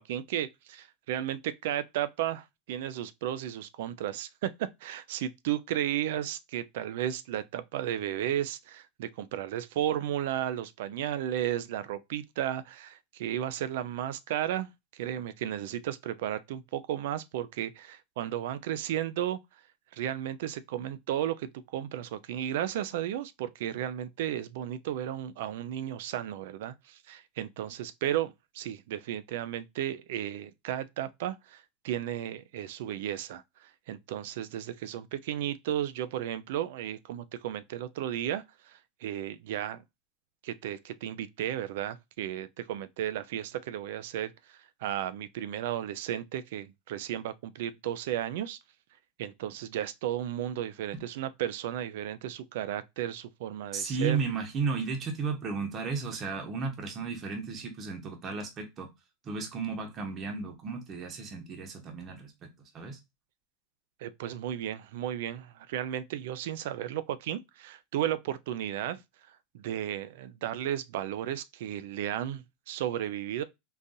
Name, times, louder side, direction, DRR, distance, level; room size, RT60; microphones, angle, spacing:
voice 1, 0.0-19.4 19.9-39.8 40.4-48.6 49.2-54.2 64.0-69.0 69.5-73.4, right 11 dB, 75° right, 0.4 m, -34 dB
voice 2, 53.7-58.9 59.2-62.3 62.7-63.0, right 5 dB, 35° right, 0.9 m, -34 dB
3.8 x 2.5 x 2.6 m
supercardioid pair, 125°, 0 cm